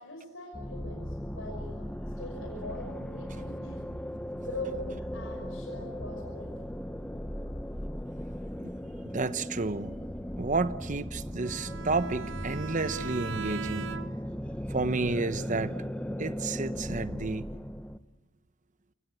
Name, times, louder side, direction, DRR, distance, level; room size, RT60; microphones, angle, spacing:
voice 1, 0.0-1.9 2.2-3.9 4.3-6.5 7.1-7.2 7.5-7.6, left 2 dB, 75° left, 5.9 m, -42 dB
sound 1, 0.5-18.0, equal, 5° left, 0.9 m, -37 dB
voice 2, 9.1-9.9 10.4-13.9 14.7-15.8 16.2-17.5, right 3 dB, 40° right, 0.9 m, -31 dB
Bowed string instrument, 11.4-14.4, right 7 dB, 65° right, 1.1 m, -40 dB
29.0 x 25.0 x 8.2 m
head